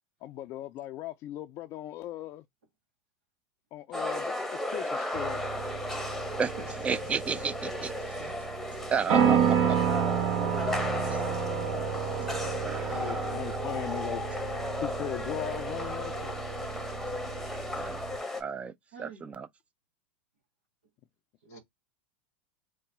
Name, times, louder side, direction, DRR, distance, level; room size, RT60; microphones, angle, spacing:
voice 1, 0.2-2.4 3.7-5.4 12.9-14.2 14.8-16.7 21.5-21.6, left 14 dB, 45° left, 0.4 m, -39 dB
sound 1, 3.9-18.4, left 2 dB, ahead, 0.9 m, -36 dB
sound 2, 5.1-18.2, right 7 dB, 60° right, 1.2 m, -31 dB
voice 2, 6.8-7.9 8.9-9.4 12.7-13.6 17.8-18.0 18.3-18.7 19.0-19.5, right 6 dB, 20° right, 0.4 m, -32 dB
voice 3, 9.1-9.5 10.3-11.8 12.2-12.3 18.9-19.2 21.4-21.6, right 2 dB, 80° right, 1.1 m, -40 dB
4.0 x 2.1 x 3.3 m
hypercardioid pair, 90°, 6 cm